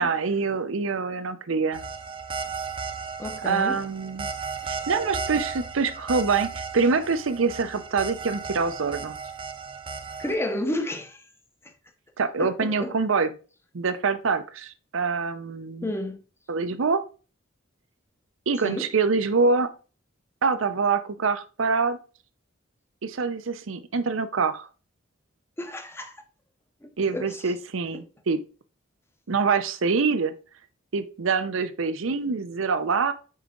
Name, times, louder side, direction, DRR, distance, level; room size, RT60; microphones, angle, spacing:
voice 1, 0.0-1.8 3.4-4.3 4.6-9.2 12.2-13.3 13.7-15.9 16.5-17.0 18.5-19.7 20.4-22.0 23.0-24.7 27.0-28.4 29.3-30.3 30.9-33.1, right 4 dB, 75° right, 0.6 m, -25 dB
sound 1, 1.7-10.3, right 5 dB, 25° right, 0.6 m, -35 dB
voice 2, 3.2-3.8 10.2-11.2 12.4-13.0 15.8-16.2 18.6-18.9 25.6-26.2 26.8-27.4, left 1 dB, 10° left, 0.7 m, -31 dB
5.5 x 4.6 x 3.7 m
head